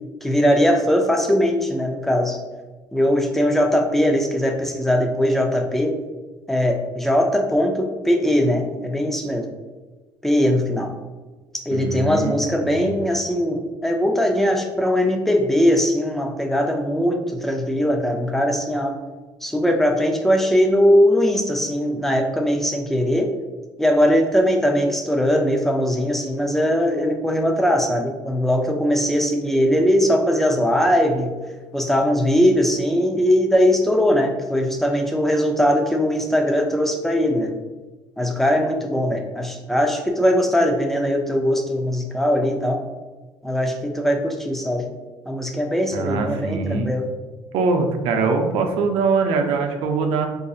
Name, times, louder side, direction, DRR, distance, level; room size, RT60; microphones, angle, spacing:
voice 1, 0.2-2.4 2.9-5.9 6.5-9.5 10.2-10.9 11.5-18.9 19.4-23.3 23.8-31.3 31.7-37.6 38.2-42.8 43.4-44.8 45.3-47.0, equal, 5° left, 2 dB, 0.4 m, -20 dB
voice 2, 11.7-12.4 12.6-12.9 45.9-46.9 47.5-50.3, right 4 dB, 80° right, 5 dB, 0.5 m, -22 dB
4.9 x 2.6 x 2.3 m, 1.3 s
cardioid pair, 155°, 9 cm